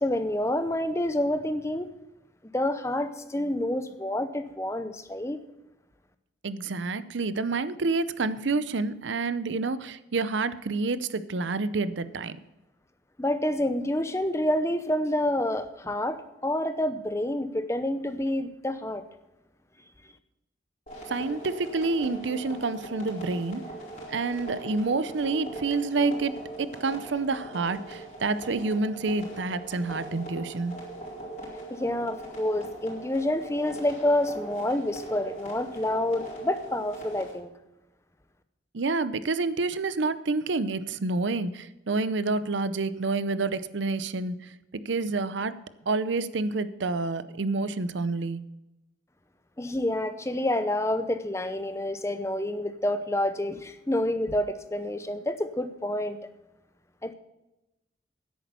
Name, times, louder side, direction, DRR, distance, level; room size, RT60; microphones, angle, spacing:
voice 1, 0.0-1.9 2.5-5.4 13.2-19.0 31.7-37.5 49.6-56.2 57.0-57.1, left 1 dB, 15° left, 10 dB, 0.7 m, -28 dB
voice 2, 6.4-12.4 21.1-23.6 24.1-30.8 38.7-44.5 44.9-45.6 45.9-48.4, right 3 dB, 80° right, 14 dB, 0.6 m, -28 dB
sound 1, 20.9-37.3, right 1 dB, 40° left, 4.6 m, -41 dB
10.5 x 8.5 x 6.8 m, 0.95 s
head